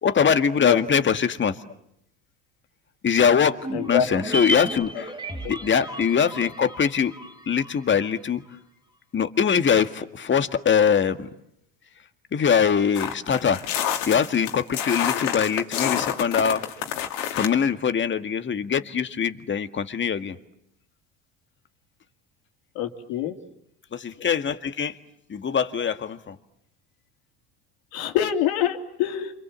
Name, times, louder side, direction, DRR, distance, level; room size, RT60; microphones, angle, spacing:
voice 1, 0.0-1.6 3.0-3.6 3.9-5.1 5.5-7.1 7.5-8.4 9.1-11.3 12.3-13.6 14.1-16.6 17.3-20.4 23.9-25.0 25.3-26.4, left 7 dB, 30° left, 9 dB, 1.8 m, -22 dB
sound 1, 3.6-8.1 8.3-8.4, equal, 10° right, 3.3 m, -33 dB
voice 2, 3.7-4.1 4.3-4.4 5.4-5.6 22.7-23.3 27.9-29.3, left 10 dB, 70° left, 4 dB, 3.0 m, -25 dB
sound 2, 12.9-17.5, left 10 dB, 85° left, 2.6 m, -28 dB
29.0 x 26.5 x 7.5 m, 0.77 s
supercardioid pair, 90°, 37 cm